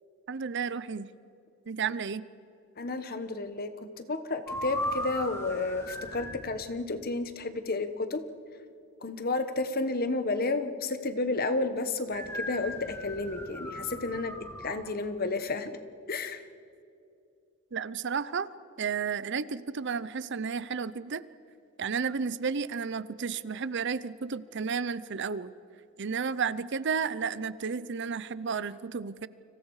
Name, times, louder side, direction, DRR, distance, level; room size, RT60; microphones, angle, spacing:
voice 1, 0.3-1.1 1.7-2.2 17.7-18.5 18.8-21.2 21.8-25.5 26.0-29.3, right 5 dB, 55° right, 17 dB, 0.6 m, -32 dB
voice 2, 2.8-8.2 9.0-15.8 16.1-16.5, left 3 dB, 45° left, 10 dB, 1.2 m, -31 dB
sound 1, 4.5-6.4 12.1-14.8, left 1 dB, 15° left, 2.6 m, -37 dB
30.0 x 26.0 x 4.9 m, 2.6 s
head